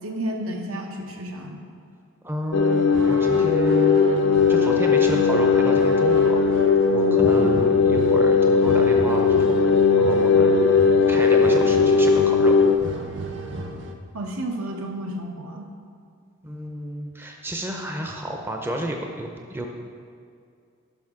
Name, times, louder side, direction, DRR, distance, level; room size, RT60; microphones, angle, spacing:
voice 1, 0.0-1.6 7.0-7.4 14.1-15.7, right 1 dB, 80° right, 2 dB, 1.0 m, -31 dB
voice 2, 2.2-2.8 3.1-6.4 6.9-10.5 11.1-12.5 16.4-19.7, equal, 10° right, 1 dB, 0.5 m, -31 dB
sound 1, 2.5-12.8, left 5 dB, 60° left, 0.4 m, -18 dB
sound 2, 2.6-13.9, right 1 dB, 55° right, 0.7 m, -35 dB
10.5 x 6.0 x 3.7 m, 2.3 s
head